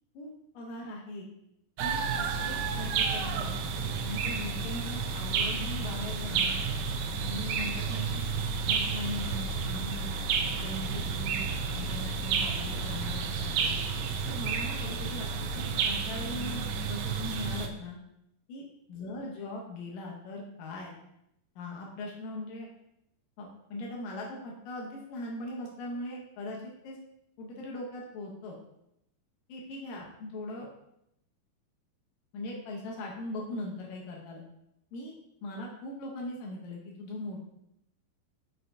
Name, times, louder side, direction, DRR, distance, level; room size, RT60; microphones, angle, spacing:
voice 1, 0.1-1.3 1.8-3.5 4.0-6.6 7.2-8.3 8.7-10.2 10.6-11.5 11.7-13.7 14.2-18.0 18.5-20.9 21.6-22.7 23.4-27.0 27.4-28.6 29.5-30.7 32.3-34.4 34.9-35.1 35.4-37.4, left 2 dB, 75° left, -2 dB, 2.2 m, -40 dB
sound 1, 1.8-17.7, right 5 dB, 85° right, 2.0 m, -31 dB
6.3 x 5.6 x 2.6 m, 0.80 s
omnidirectional pair, 4.6 m